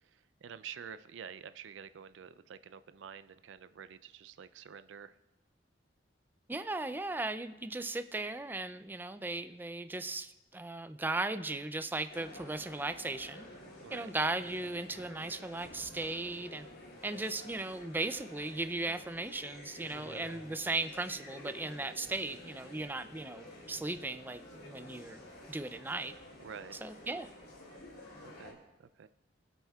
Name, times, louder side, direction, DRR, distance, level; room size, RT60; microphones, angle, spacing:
voice 1, 0.0-5.1 13.8-14.1 26.4-26.8 28.2-29.1, right 7 dB, 90° right, 13 dB, 0.4 m, -49 dB
voice 2, 6.5-13.5 13.9-16.7 17.0-25.2 25.5-26.2 26.8-27.3, right 2 dB, 10° right, 11 dB, 0.3 m, -37 dB
sound 1, 12.1-28.5, left 1 dB, 55° left, 2.8 m, -51 dB
23.5 x 8.0 x 2.3 m, 0.99 s
head